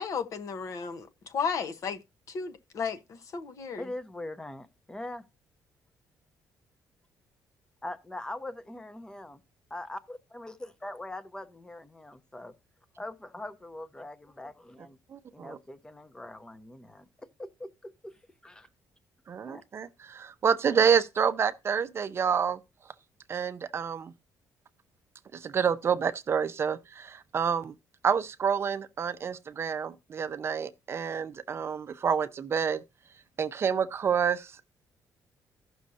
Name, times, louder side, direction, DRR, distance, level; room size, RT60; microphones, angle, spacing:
voice 1, 0.0-2.0 2.3-3.9, left 6 dB, 60° left, 1.0 m, -34 dB
voice 2, 3.8-5.2 7.8-9.4 9.7-12.5 13.0-15.0 15.3-17.1 17.4-18.1 18.4-18.7 19.4-19.6, left 1 dB, 10° left, 0.8 m, -42 dB
voice 3, 15.1-15.6 19.3-22.6 23.3-24.1 25.3-27.7 28.0-32.8 33.4-34.7, right 7 dB, 40° right, 0.5 m, -28 dB
15.5 x 6.2 x 2.7 m
cardioid pair, 115°, 6 cm